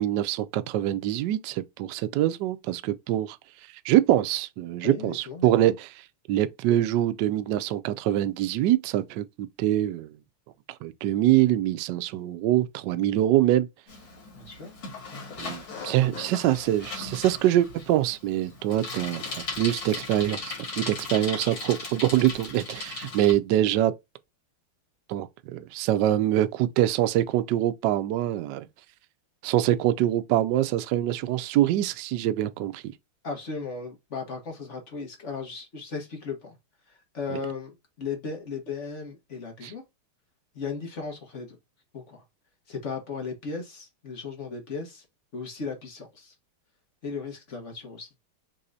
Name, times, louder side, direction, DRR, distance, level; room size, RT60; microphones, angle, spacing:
voice 1, 0.0-3.4 3.8-5.9 6.3-10.2 10.8-13.7 15.4-23.9 25.1-28.7 29.4-32.9 39.6-39.7, right 13 dB, 75° right, 1.0 m, -24 dB
voice 2, 4.8-5.7 14.3-14.7 33.2-36.6 36.9-39.8 40.5-41.5 41.9-42.2 42.7-45.0 45.3-46.3 47.0-48.1, left 4 dB, 40° left, 1.5 m, -36 dB
Bicycle, 13.9-23.3, left 3 dB, 70° left, 2.8 m, -38 dB
5.5 x 3.1 x 2.6 m
omnidirectional pair, 2.3 m